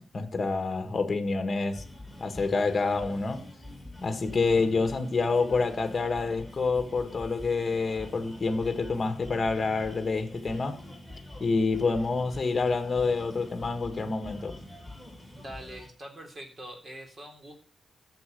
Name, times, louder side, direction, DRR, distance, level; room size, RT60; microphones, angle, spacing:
voice 1, 0.0-1.8 2.2-3.4 4.0-10.8 11.4-14.6, left 4 dB, 25° left, 1.8 m, -27 dB
sound 1, 1.7-15.9, left 1 dB, ahead, 4.5 m, -45 dB
voice 2, 15.4-17.6, right 1 dB, 25° right, 3.6 m, -43 dB
14.0 x 7.3 x 6.8 m
wide cardioid pair, 165°, 0 cm